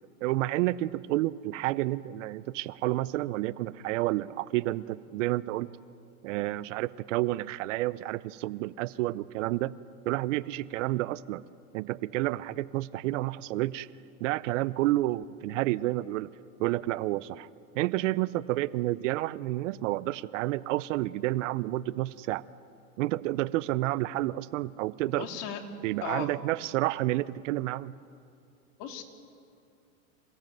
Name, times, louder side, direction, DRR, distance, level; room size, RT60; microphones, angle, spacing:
voice 1, 0.2-5.7 6.2-9.7 10.1-11.4 11.7-13.9 14.2-16.3 16.6-17.5 17.7-22.4 23.0-25.3 25.8-27.9, right 17 dB, 55° right, 19 dB, 0.7 m, -30 dB
voice 2, 25.1-25.6 26.0-26.4 28.8-29.0, left 8 dB, 45° left, 3 dB, 3.1 m, -36 dB
27.5 x 17.0 x 9.2 m, 2.4 s
hypercardioid pair, 120°, 44 cm